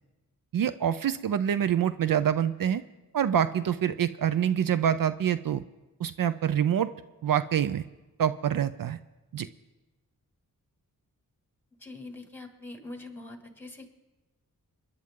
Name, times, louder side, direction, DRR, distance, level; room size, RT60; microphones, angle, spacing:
voice 1, 0.5-2.8 3.1-5.6 6.0-6.9 7.2-7.8 8.2-9.0 9.3-9.5, right 9 dB, 65° right, 13 dB, 0.5 m, -26 dB
voice 2, 11.8-13.9, left 2 dB, 5° left, 4 dB, 2.1 m, -43 dB
28.0 x 10.5 x 3.7 m, 1.1 s
wide cardioid pair, 95°, 36 cm